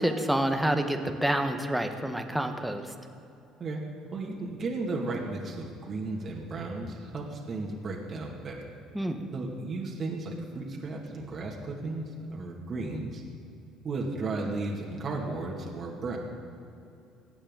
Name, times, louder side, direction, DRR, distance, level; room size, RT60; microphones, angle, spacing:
voice 1, 0.0-2.8 8.9-9.2, right 1 dB, 5° right, 5 dB, 1.4 m, -28 dB
voice 2, 4.1-8.7 9.3-13.2 13.8-16.2, right 3 dB, 45° right, -1 dB, 2.2 m, -34 dB
22.5 x 8.8 x 3.9 m, 2.7 s
hypercardioid pair, 60°, 0 cm